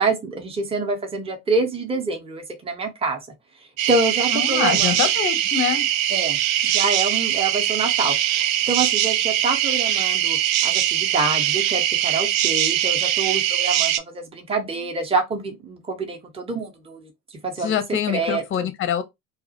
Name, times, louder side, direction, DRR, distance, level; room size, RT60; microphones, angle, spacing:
voice 1, 0.0-3.2 3.9-5.0 6.1-6.4 6.7-17.1 17.4-17.8 18.1-18.7, right 3 dB, 15° right, 0.7 m, -26 dB
sound 1, 3.8-14.0, right 12 dB, 65° right, 0.5 m, -21 dB
voice 2, 4.3-5.9 17.6-19.0, left 9 dB, 30° left, 0.6 m, -25 dB
2.3 x 2.0 x 2.7 m
hypercardioid pair, 65°, 44 cm